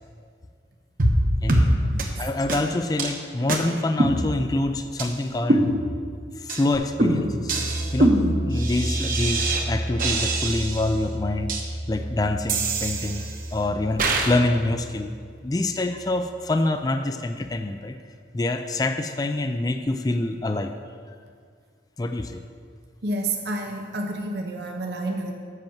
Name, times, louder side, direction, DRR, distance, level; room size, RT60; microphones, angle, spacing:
sound 1, 1.0-1.2 1.5-1.7 2.0-2.1 2.5-2.6 3.0-3.1 3.5-3.6 4.0-4.6 5.0-5.1 5.5-6.1 6.5-6.6 7.0-9.6 10.0-10.9 11.5-11.6 12.5-13.5 14.0-14.3, right 1 dB, 50° right, 1.0 m, -23 dB
voice 1, 1.4-1.8 2.2-5.7 6.4-7.5 7.9-11.5 11.9-15.2 15.4-18.0 18.3-20.7 22.0-22.4, left 2 dB, 20° left, 8 dB, 0.3 m, -26 dB
sound 2, 6.7-16.3, equal, 55° left, 1.1 m, -32 dB
voice 2, 23.0-25.3, right 2 dB, 70° right, 2 dB, 0.8 m, -29 dB
7.9 x 5.8 x 7.1 m, 2.1 s
head